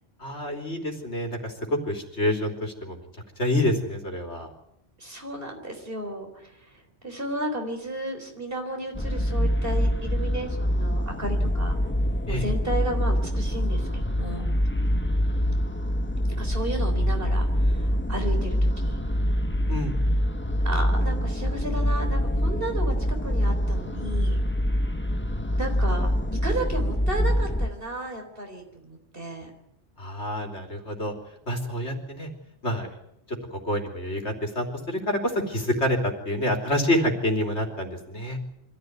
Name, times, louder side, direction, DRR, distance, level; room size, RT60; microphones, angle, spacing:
voice 1, 0.2-3.0 3.4-4.5 12.3-12.4 19.7-19.9 30.0-31.1 31.5-32.3 32.6-33.0 33.3-38.4, left 1 dB, 80° left, 3 dB, 3.7 m, -27 dB
voice 2, 5.0-11.8 12.3-14.5 16.4-19.0 20.6-24.4 25.6-26.1 26.4-29.5, right 1 dB, 55° right, 4 dB, 4.3 m, -33 dB
sound 1, 8.9-27.7, equal, 10° left, 1.1 m, -25 dB
25.0 x 15.0 x 9.6 m, 0.80 s
omnidirectional pair, 1.1 m